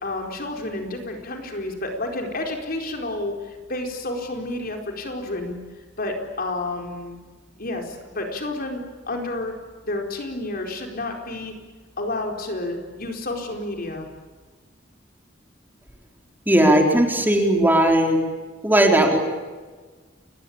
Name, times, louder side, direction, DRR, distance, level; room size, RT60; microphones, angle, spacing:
voice 1, 0.0-5.6 6.0-7.2 7.6-9.5 9.8-11.5 12.0-14.1, left 2 dB, 50° left, 3 dB, 4.5 m, -30 dB
voice 2, 16.5-18.2 18.6-19.2, right 1 dB, 10° right, 2 dB, 3.9 m, -17 dB
29.5 x 22.0 x 8.8 m, 1.4 s
head